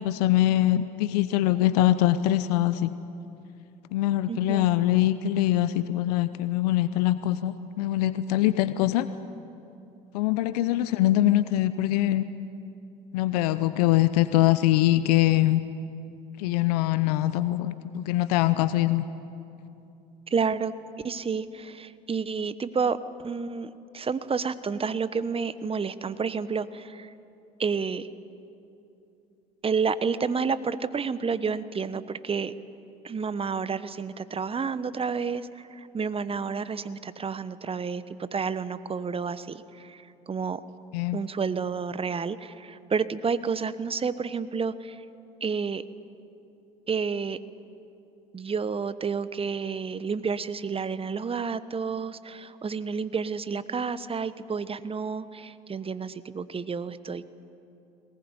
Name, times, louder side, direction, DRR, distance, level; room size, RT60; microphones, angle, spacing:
voice 1, 0.0-2.9 3.9-9.1 10.1-12.2 13.1-15.6 16.4-19.0 40.9-41.2, left 14 dB, 75° left, 14 dB, 0.8 m, -23 dB
voice 2, 4.3-4.7 10.8-11.1 20.3-20.7 21.0-23.0 23.2-27.1 27.6-28.1 29.6-32.5 33.0-40.6 41.1-45.0 45.4-45.8 46.9-47.4 48.3-57.2, right 5 dB, 30° right, 15 dB, 1.1 m, -30 dB
22.5 x 19.5 x 9.8 m, 2.7 s
hypercardioid pair, 65°, 20 cm